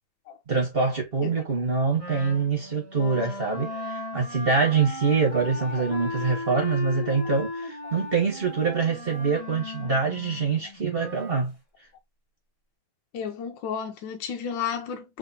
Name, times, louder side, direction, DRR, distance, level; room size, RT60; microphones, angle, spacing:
voice 1, 0.5-11.5, right 5 dB, 30° right, 1.3 m, -25 dB
Wind instrument woodwind instrument, 2.0-11.4, left 2 dB, 20° left, 1.1 m, -37 dB
voice 2, 13.1-15.2, left 7 dB, 70° left, 1.3 m, -32 dB
3.7 x 3.0 x 2.7 m
omnidirectional pair, 2.3 m